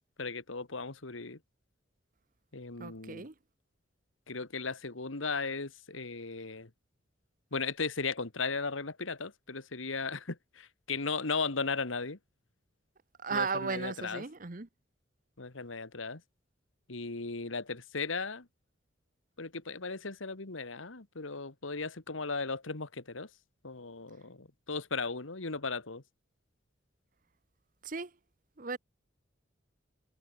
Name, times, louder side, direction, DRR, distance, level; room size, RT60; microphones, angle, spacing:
voice 1, 0.2-1.4 2.5-3.3 4.3-6.7 7.5-12.2 13.3-14.2 15.4-16.2 16.9-18.5 19.4-23.3 23.6-26.0, left 4 dB, 90° left, 1.9 m, -36 dB
voice 2, 2.8-3.3 13.2-14.7 27.8-28.1 28.6-28.8, right 4 dB, 45° right, 1.0 m, -35 dB
head